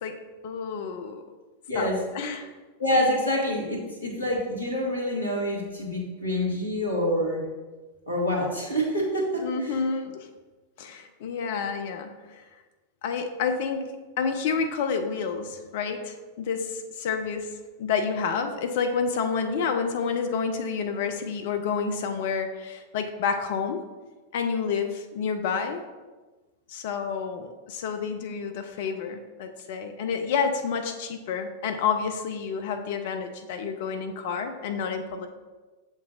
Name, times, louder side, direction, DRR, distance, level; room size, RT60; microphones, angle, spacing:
voice 1, 0.0-1.2 1.7-2.5 9.4-10.3 10.8-12.4 13.0-17.5 17.8-23.8 24.3-25.8 26.7-35.3, left 5 dB, 55° left, 6 dB, 0.5 m, -29 dB
voice 2, 1.7-2.0 2.8-7.5 8.1-9.8, equal, 80° left, -2 dB, 1.7 m, -27 dB
7.0 x 6.0 x 2.6 m, 1.2 s
figure-of-eight pair, 90°, 0 cm